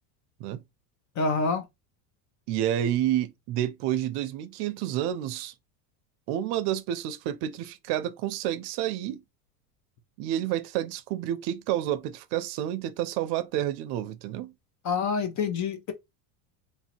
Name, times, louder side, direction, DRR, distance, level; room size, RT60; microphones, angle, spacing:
voice 1, 1.2-1.6 14.8-15.9, left 4 dB, 40° left, 1.1 m, -27 dB
voice 2, 2.5-5.5 6.3-9.2 10.2-14.5, right 12 dB, 60° right, 0.6 m, -29 dB
3.2 x 2.7 x 4.4 m
supercardioid pair, 115°, 46 cm